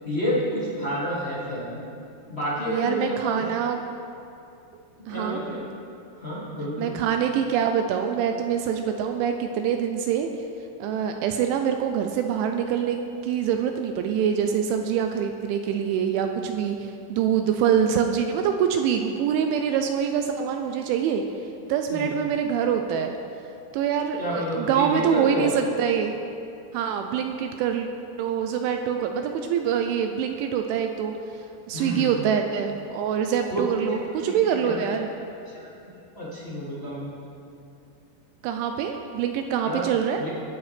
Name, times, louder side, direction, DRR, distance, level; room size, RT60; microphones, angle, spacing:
voice 1, 0.0-1.8 2.3-3.5 5.0-5.6 6.2-7.0 21.9-22.1 24.2-25.5 31.7-32.1 33.5-33.6 34.2-34.9 35.5-37.1 39.6-39.8 40.2-40.3, equal, 30° left, -10 dB, 1.1 m, -30 dB
voice 2, 2.7-3.8 4.7-5.4 6.8-10.3 10.8-21.2 21.7-23.1 23.7-26.2 26.7-27.9 28.2-31.1 31.7-35.1 38.4-40.2, right 8 dB, 85° right, 5 dB, 2.8 m, -25 dB
20.5 x 9.8 x 3.4 m, 2.7 s
omnidirectional pair, 6.0 m